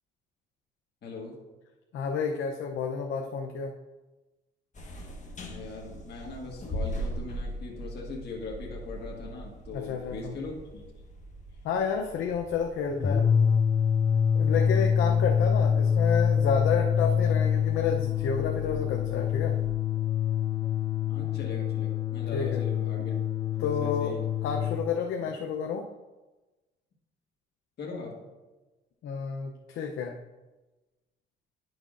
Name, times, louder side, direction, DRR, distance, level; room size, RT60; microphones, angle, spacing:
voice 1, 1.0-1.3 5.5-10.8 14.7-15.1 20.6-20.7 21.1-23.2 23.6-24.2 25.2-25.3 27.8-28.3, left 3 dB, 55° left, -2 dB, 1.5 m, -40 dB
voice 2, 1.9-3.7 9.7-10.4 11.6-13.3 14.3-19.6 22.3-22.6 23.6-25.9 29.0-30.2, left 6 dB, 80° left, 3 dB, 0.6 m, -30 dB
sound 1, 4.7-19.7, equal, 40° left, 1.3 m, -42 dB
sound 2, 12.9-24.8, left 7 dB, 20° left, 0.3 m, -26 dB
10.0 x 6.1 x 2.5 m, 1.2 s
cardioid pair, 90°, 20 cm